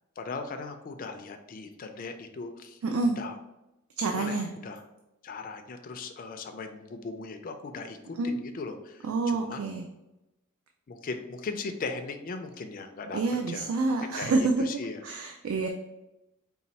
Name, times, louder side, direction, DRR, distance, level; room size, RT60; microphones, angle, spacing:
voice 1, 0.2-2.8 3.2-3.4 4.1-4.8 5.2-9.1 9.4-9.7 10.9-13.2 13.5-13.7 14.1-15.0, left 4 dB, 40° left, 6 dB, 0.4 m, -38 dB
voice 2, 2.8-3.2 4.0-4.5 8.2-8.4 9.0-9.8 13.1-14.7 15.0-15.7, right 3 dB, 70° right, 3 dB, 0.4 m, -27 dB
4.2 x 2.3 x 4.0 m, 0.93 s
head